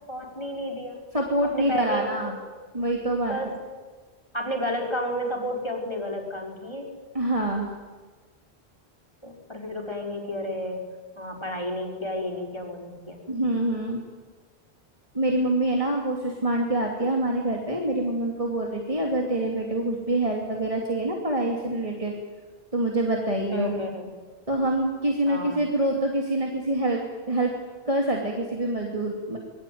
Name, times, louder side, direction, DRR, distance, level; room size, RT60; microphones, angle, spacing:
voice 1, 0.1-1.0 1.5-2.3 3.3-3.6 4.3-6.9 9.2-10.9 11.2-13.2 23.5-24.1 25.3-25.6, equal, 25° left, 1 dB, 5.2 m, -31 dB
voice 2, 1.1-2.3 2.7-3.5 7.1-7.7 13.3-14.0 15.1-22.1 22.7-23.7 24.5-27.0 27.3-27.6 27.8-29.4, right 1 dB, 30° right, 0 dB, 2.8 m, -26 dB
26.0 x 22.0 x 9.5 m, 1.4 s
omnidirectional pair, 1.1 m